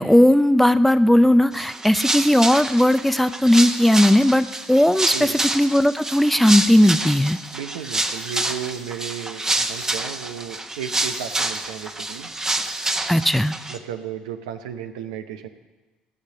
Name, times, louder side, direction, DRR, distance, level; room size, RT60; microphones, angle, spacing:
voice 1, 0.0-7.4 13.1-13.5, left 1 dB, 5° left, 13 dB, 0.5 m, -17 dB
sound 1, 1.5-13.8, right 2 dB, 15° right, 1.1 m, -27 dB
voice 2, 7.5-12.3 13.7-15.5, right 9 dB, 80° right, 8 dB, 0.8 m, -34 dB
16.0 x 6.6 x 6.8 m, 1.2 s
hypercardioid pair, 60°, 4 cm